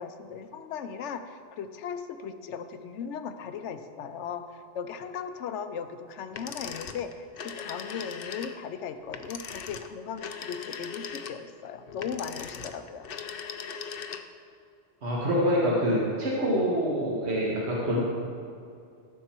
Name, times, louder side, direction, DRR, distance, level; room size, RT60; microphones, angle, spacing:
voice 1, 0.0-13.1, left 7 dB, 80° left, 9 dB, 1.0 m, -37 dB
sound 1, 6.3-14.5, left 6 dB, 60° left, 0.7 m, -39 dB
voice 2, 15.0-18.0, equal, 65° right, -5 dB, 1.8 m, -26 dB
13.5 x 6.5 x 4.5 m, 2.5 s
omnidirectional pair, 1.2 m